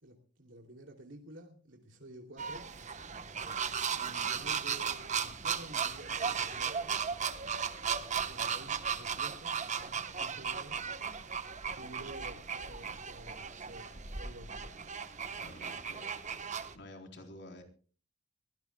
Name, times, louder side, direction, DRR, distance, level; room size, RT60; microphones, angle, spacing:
voice 1, 0.0-2.7 3.9-6.9 8.2-10.8 11.8-15.2, right 1 dB, 75° right, 1 dB, 2.9 m, -51 dB
sound 1, 2.4-16.7, right 6 dB, 40° right, 1.2 m, -36 dB
sound 2, 3.4-4.5 6.2-7.3, left 2 dB, 15° left, 4.1 m, -59 dB
voice 2, 15.4-16.2 16.7-17.6, left 1 dB, 65° left, 3 dB, 3.9 m, -50 dB
23.5 x 17.5 x 2.3 m, 0.38 s
head